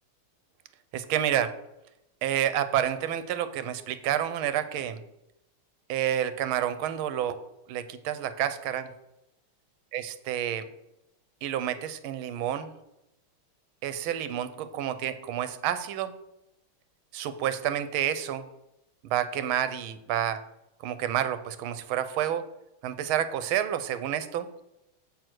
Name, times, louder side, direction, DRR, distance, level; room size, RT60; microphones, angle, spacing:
voice 1, 0.9-1.5 2.2-5.0 5.9-7.4 7.7-8.9 9.9-10.7 11.4-12.7 13.8-16.1 17.1-18.4 19.1-20.4 20.8-22.4 22.8-24.5, right 10 dB, 80° right, 12 dB, 1.4 m, -29 dB
7.8 x 4.6 x 6.1 m, 0.88 s
omnidirectional pair, 2.4 m